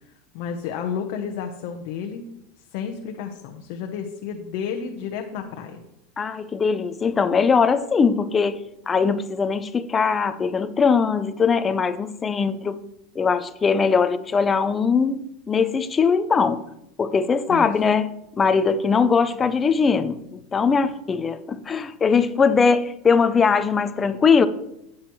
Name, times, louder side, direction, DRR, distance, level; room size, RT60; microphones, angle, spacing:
voice 1, 0.3-2.2 2.7-5.8 17.5-17.7, left 7 dB, 45° left, 0.8 m, -31 dB
voice 2, 6.2-12.8 13.2-16.6 17.0-18.1 18.4-24.5, left 5 dB, 15° left, 0.4 m, -21 dB
13.0 x 8.6 x 3.1 m
supercardioid pair, 180°, 0 cm